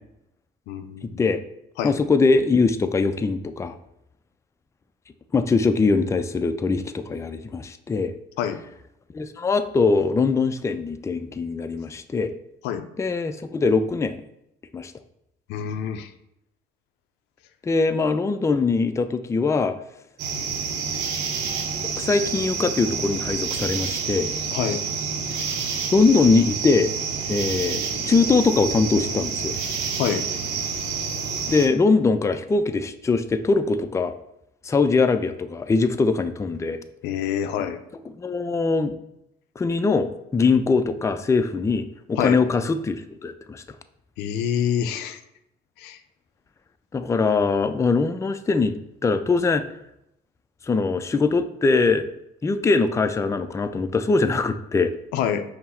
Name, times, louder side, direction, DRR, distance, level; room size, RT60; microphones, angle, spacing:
voice 1, 0.7-1.2 1.8-2.0 8.4-8.6 12.6-12.8 15.5-16.1 24.5-24.9 30.0-30.2 37.0-37.8 42.2-42.4 44.2-45.2 45.8-46.0 55.1-55.4, left 9 dB, 85° left, 8 dB, 0.4 m, -26 dB
voice 2, 1.8-3.8 5.3-8.1 9.1-12.3 13.0-14.1 14.7-14.9 17.6-19.8 21.8-24.3 25.9-26.9 27.3-29.6 31.5-34.1 34.6-36.8 38.2-38.9 39.6-43.6 46.9-48.7 49.0-49.6 50.7-52.1 52.4-54.9, left 4 dB, 15° left, 9 dB, 0.3 m, -22 dB
sound 1, 20.2-31.7, right 5 dB, 85° right, 0.6 m, -28 dB
5.4 x 2.0 x 4.3 m, 0.81 s
supercardioid pair, 70°, 17 cm